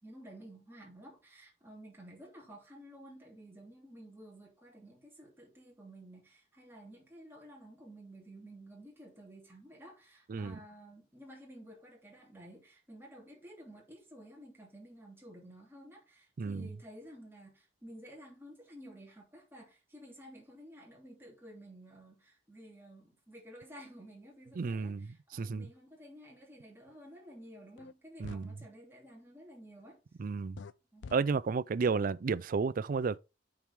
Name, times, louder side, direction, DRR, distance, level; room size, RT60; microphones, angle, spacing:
voice 1, 0.0-30.0 30.9-31.1, right 1 dB, 15° right, 2.9 m, -53 dB
voice 2, 10.3-10.6 16.4-16.7 24.6-25.7 28.2-28.5 30.2-30.6 31.1-33.2, right 4 dB, 50° right, 0.4 m, -32 dB
sound 1, 27.8-27.9 28.2-28.5 30.6-30.7 31.0-31.2, left 5 dB, 80° left, 0.4 m, -45 dB
8.6 x 4.7 x 3.5 m
head